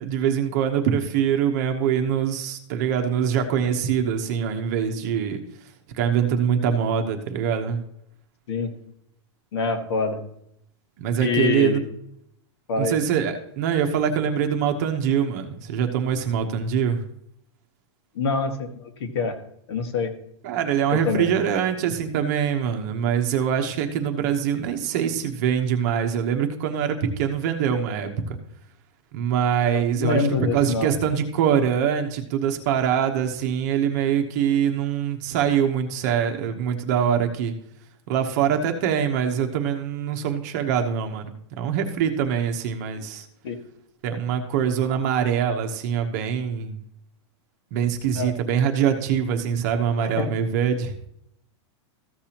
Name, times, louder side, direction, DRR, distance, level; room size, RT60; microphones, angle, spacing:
voice 1, 0.0-5.4 6.0-7.8 11.0-11.8 12.8-17.0 20.4-28.4 29.1-37.5 38.1-43.2 44.0-46.8 47.7-50.9, right 8 dB, 35° right, 5 dB, 0.9 m, -24 dB
voice 2, 9.5-10.2 11.2-11.8 12.7-13.0 18.2-19.4 19.7-20.1 20.9-21.3 29.6-30.9 43.4-43.6 48.2-48.3 50.0-50.3, left 4 dB, 60° left, 5 dB, 1.8 m, -25 dB
14.5 x 6.7 x 2.9 m, 0.73 s
supercardioid pair, 175°, 15 cm